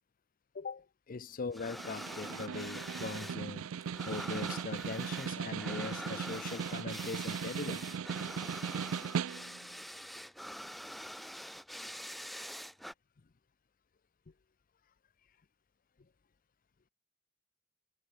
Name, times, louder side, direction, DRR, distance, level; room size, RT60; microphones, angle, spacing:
voice 1, 0.5-7.9, left 4 dB, 45° left, 0.6 m, -41 dB
sound 1, 1.5-3.4 3.6-12.9, equal, ahead, 0.3 m, -45 dB
Snare drum, 1.8-9.7, right 7 dB, 90° right, 0.4 m, -38 dB
head